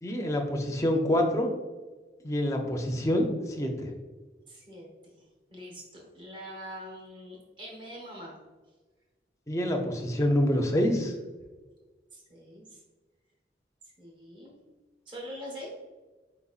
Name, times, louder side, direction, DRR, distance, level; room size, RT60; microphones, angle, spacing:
voice 1, 0.0-1.5 2.2-3.9 9.5-11.1, left 1 dB, 15° left, 2 dB, 0.5 m, -26 dB
voice 2, 4.5-5.1 5.5-8.4 12.1-12.8 14.0-14.6 15.1-15.8, equal, 25° right, -2 dB, 0.9 m, -44 dB
4.4 x 4.0 x 2.4 m, 1.3 s
head